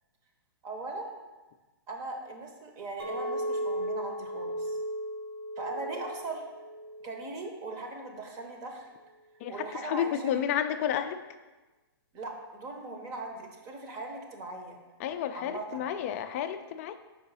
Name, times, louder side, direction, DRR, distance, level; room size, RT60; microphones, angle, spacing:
voice 1, 0.6-1.2 1.9-4.8 5.6-6.4 7.0-8.9 9.5-10.4 12.1-14.8 15.3-15.8, right 2 dB, 25° right, 3 dB, 0.8 m, -39 dB
Chink clink, 3.0-7.3 7.7-8.1, equal, 80° right, 1.6 m, -36 dB
voice 2, 9.4-11.2 15.0-16.9, left 9 dB, 35° left, 10 dB, 0.4 m, -31 dB
4.9 x 3.7 x 5.4 m, 1.2 s
hypercardioid pair, 145°, 13 cm